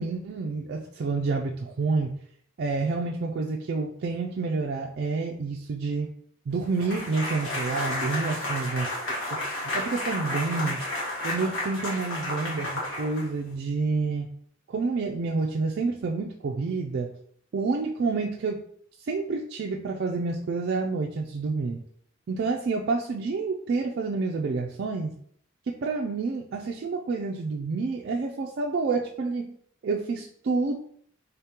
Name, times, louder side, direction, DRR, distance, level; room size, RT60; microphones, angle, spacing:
voice 1, 0.0-2.1 2.6-6.1 6.5-8.9 9.3-10.8 11.2-14.3 14.7-17.1 17.5-18.6 19.0-21.8 22.3-25.2 25.7-29.5 29.8-30.8, right 4 dB, 50° right, 1 dB, 0.3 m, -28 dB
sound 1, 6.8-13.5, left 1 dB, 65° left, 1.4 m, -32 dB
3.6 x 3.5 x 2.9 m, 0.64 s
head